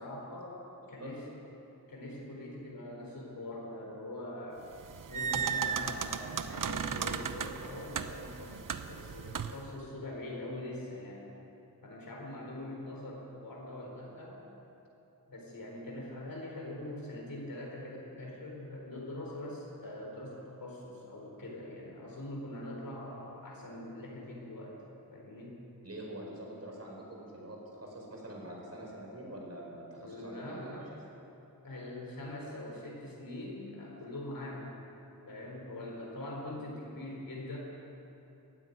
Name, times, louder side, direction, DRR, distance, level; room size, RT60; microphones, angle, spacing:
voice 1, 0.0-1.4 1.9-4.7 5.1-8.6 8.9-11.3 11.8-14.4 15.3-24.7 25.1-25.6 30.0-30.9 31.6-34.7 35.2-37.6, left 1 dB, 70° left, -2 dB, 4.4 m, -43 dB
sound 1, 4.7-9.7, right 7 dB, 60° right, 0.8 m, -36 dB
voice 2, 25.8-30.8, right 1 dB, 45° right, -2 dB, 4.7 m, -45 dB
15.5 x 10.0 x 9.4 m, 2.9 s
wide cardioid pair, 75°, 36 cm